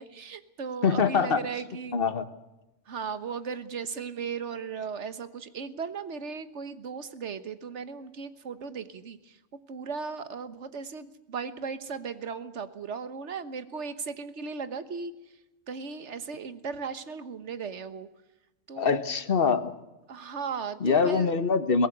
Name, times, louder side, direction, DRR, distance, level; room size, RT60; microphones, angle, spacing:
voice 1, 0.0-2.0 2.9-9.4 9.7-15.1 15.7-18.1 18.7-19.0 20.1-21.3, right 5 dB, 65° right, 12 dB, 1.5 m, -37 dB
voice 2, 0.8-1.4 1.9-2.2 18.8-19.7 20.8-21.9, left 5 dB, 50° left, 11 dB, 1.5 m, -24 dB
22.0 x 17.5 x 8.0 m, 0.99 s
omnidirectional pair, 1.3 m